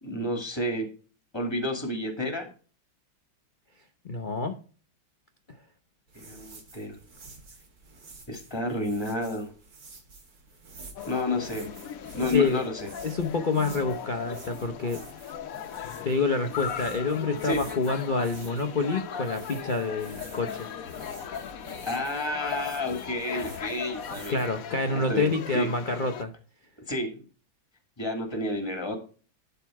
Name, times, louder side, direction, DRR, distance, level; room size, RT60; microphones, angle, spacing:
voice 1, 0.0-0.9 1.3-2.5 6.1-7.0 8.3-9.5 11.1-11.7 12.1-12.9 17.4-17.6 21.9-24.4 25.1-25.7 26.9-27.2 28.0-29.0, left 1 dB, 15° left, 5 dB, 1.6 m, -30 dB
voice 2, 4.0-4.5 12.3-12.6 13.0-15.0 16.0-20.7 24.3-26.3, left 3 dB, 75° left, 5 dB, 0.4 m, -27 dB
sound 1, 6.1-24.5, right 3 dB, 50° right, 2.3 m, -49 dB
sound 2, 11.0-26.2, left 8 dB, 60° left, 1.0 m, -38 dB
11.5 x 4.1 x 4.6 m, 0.38 s
omnidirectional pair, 2.1 m